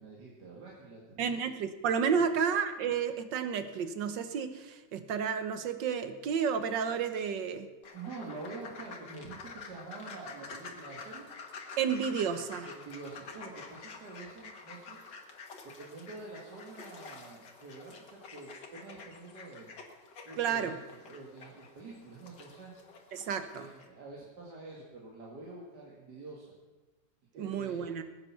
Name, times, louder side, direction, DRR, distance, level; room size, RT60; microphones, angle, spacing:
voice 1, 0.0-1.3 7.9-11.3 12.6-15.1 15.8-19.7 20.2-22.7 23.5-26.5 27.3-27.9, right 3 dB, 65° right, -4 dB, 2.6 m, -47 dB
voice 2, 1.2-7.7 11.8-12.7 20.4-20.8 23.1-23.7 27.3-28.0, right 7 dB, 85° right, 9 dB, 1.7 m, -31 dB
sound 1, 7.8-23.9, left 4 dB, 75° left, 2.2 m, -49 dB
20.5 x 9.0 x 5.9 m, 1.2 s
omnidirectional pair, 1.9 m